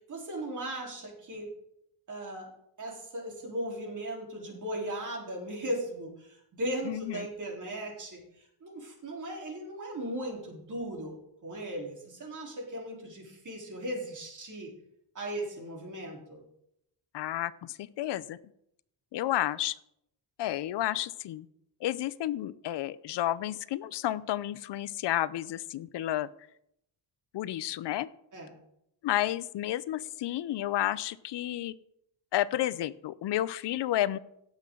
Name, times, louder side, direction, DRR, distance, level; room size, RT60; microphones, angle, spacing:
voice 1, 0.0-1.5 2.1-2.5 2.8-14.7 15.1-16.4 28.3-28.6, right 1 dB, 40° right, -1 dB, 4.0 m, -37 dB
voice 2, 6.9-7.3 17.1-18.4 19.1-19.8 20.4-21.5 21.8-26.3 27.3-28.1 29.0-31.7 32.3-34.2, left 13 dB, 65° left, 17 dB, 0.7 m, -31 dB
17.0 x 7.3 x 3.9 m, 0.76 s
cardioid pair, 110°, 45 cm